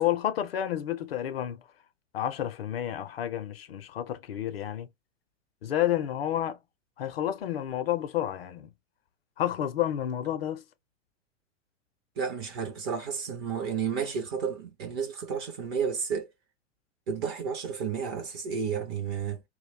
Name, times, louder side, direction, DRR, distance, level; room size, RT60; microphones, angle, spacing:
voice 1, 0.0-1.6 2.1-4.9 5.6-6.6 7.0-8.7 9.4-10.6, left 11 dB, 55° left, 0.5 m, -30 dB
voice 2, 12.2-16.3 17.1-19.4, right 6 dB, 20° right, 0.4 m, -32 dB
2.2 x 2.1 x 3.2 m
figure-of-eight pair, 105°, 37 cm